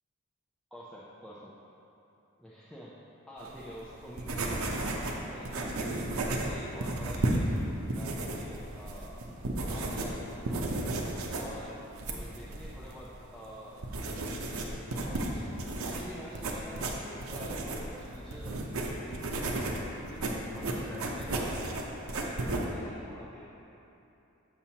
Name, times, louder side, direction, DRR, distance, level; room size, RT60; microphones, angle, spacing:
voice 1, 0.7-1.5 2.4-2.9 3.3-6.0 6.2-9.3 9.7-10.9 11.3-13.9 14.2-15.6 15.8-20.2 20.5-23.5, equal, ahead, -9 dB, 0.4 m, -47 dB
sound 1, 3.4-22.7, right 2 dB, 90° right, 0.7 m, -34 dB
7.1 x 6.9 x 2.8 m, 2.9 s
head